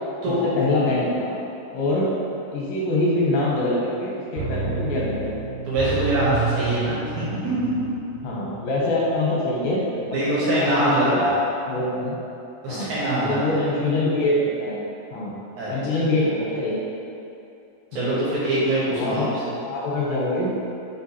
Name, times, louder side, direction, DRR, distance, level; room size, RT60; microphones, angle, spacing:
voice 1, 0.3-1.4 1.7-2.1 2.5-5.4 8.2-9.8 10.1-12.2 12.7-12.9 13.2-14.8 15.1-15.3 15.7-16.8 17.9-18.0 18.9-19.3 19.6-20.5, left 2 dB, 85° left, -5 dB, 2.4 m, -24 dB
sound 1, 4.4-9.1 9.4-9.5, right 5 dB, 85° right, 2.2 m, -30 dB
voice 2, 5.7-7.5 10.1-11.3 12.6-13.6 15.6-16.0 17.9-19.3, right 1 dB, 70° right, -10 dB, 2.0 m, -24 dB
5.2 x 2.7 x 2.8 m, 2.7 s
omnidirectional pair, 3.9 m